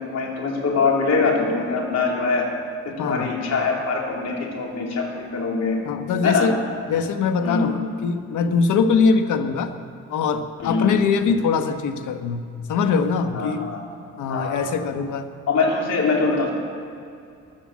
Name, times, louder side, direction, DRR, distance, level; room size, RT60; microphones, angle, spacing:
voice 1, 0.0-2.4 2.9-5.8 6.2-6.5 7.4-7.7 10.6-10.9 13.3-13.8 14.3-14.6 15.5-16.5, left 4 dB, 60° left, -1 dB, 3.6 m, -23 dB
voice 2, 5.9-6.5 6.9-9.7 10.1-13.6 14.2-15.3, left 5 dB, 80° left, 8 dB, 1.2 m, -22 dB
14.5 x 12.0 x 7.5 m, 2.5 s
cardioid pair, 90°, 30 cm